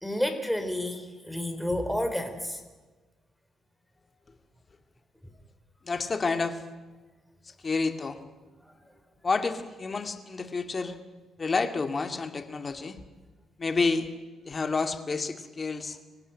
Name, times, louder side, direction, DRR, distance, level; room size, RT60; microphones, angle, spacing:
voice 1, 0.0-2.6 8.6-8.8, left 1 dB, ahead, 7 dB, 3.8 m, -30 dB
voice 2, 5.8-6.6 7.6-8.2 9.2-11.0 11.4-13.0 13.6-14.1 14.5-16.0, left 4 dB, 35° left, 7 dB, 2.2 m, -29 dB
25.5 x 16.0 x 9.1 m, 1.3 s
cardioid pair, 90°, 0 cm